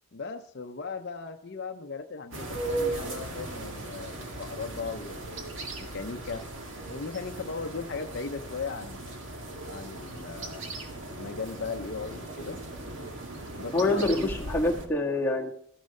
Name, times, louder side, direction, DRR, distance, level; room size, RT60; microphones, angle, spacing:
voice 1, 0.1-6.5 6.9-9.1 9.7-10.9 11.1-12.6 13.5-14.5, left 4 dB, 50° left, 6 dB, 0.6 m, -38 dB
sound 1, 2.3-14.9, right 2 dB, 60° right, 2.1 m, -37 dB
voice 2, 13.7-15.5, left 2 dB, 10° left, -3 dB, 1.7 m, -26 dB
14.0 x 10.0 x 5.3 m, 0.68 s
head